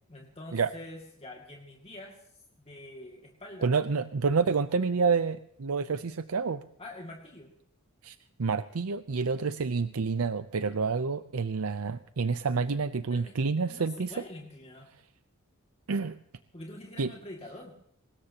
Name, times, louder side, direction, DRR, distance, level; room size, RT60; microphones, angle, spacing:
voice 1, 0.1-3.7 6.8-7.5 13.1-14.9 16.5-17.8, left 1 dB, 30° left, -1 dB, 2.3 m, -46 dB
voice 2, 3.6-6.6 8.0-14.1 15.9-16.2 17.0-17.1, right 5 dB, 80° right, 12 dB, 0.6 m, -28 dB
23.5 x 20.0 x 2.9 m, 0.72 s
head